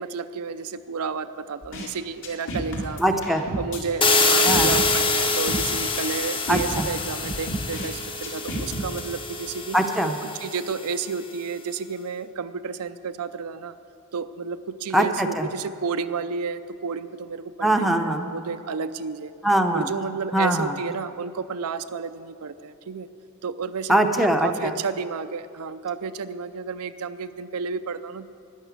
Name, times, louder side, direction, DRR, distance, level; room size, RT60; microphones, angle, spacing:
voice 1, 0.0-3.1 3.6-9.8 10.2-13.7 14.1-19.3 19.7-23.1 23.4-28.3, right 5 dB, 80° right, 11 dB, 0.5 m, -31 dB
sound 1, 1.6-1.9 2.2-3.8 4.5-5.7 6.0-6.1 6.5-7.9 8.2-9.0, right 1 dB, 55° left, 2.4 m, -31 dB
voice 2, 3.0-3.5 4.4-4.7 6.5-6.9 9.7-10.2 14.9-15.5 17.6-18.3 19.4-19.9 20.3-20.8 23.9-24.7, right 1 dB, ahead, 4 dB, 0.7 m, -22 dB
sound 2, 4.0-10.8, left 3 dB, 25° left, 0.9 m, -25 dB
12.0 x 10.5 x 8.2 m, 2.5 s
head